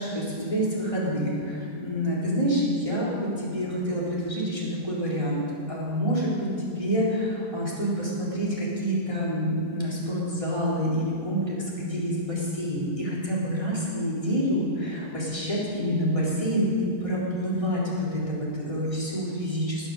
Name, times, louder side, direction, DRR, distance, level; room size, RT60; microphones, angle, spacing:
voice 1, 0.0-5.4 5.7-19.9, equal, 20° left, -7 dB, 3.9 m, -27 dB
19.5 x 7.2 x 6.8 m, 2.4 s
omnidirectional pair, 1.7 m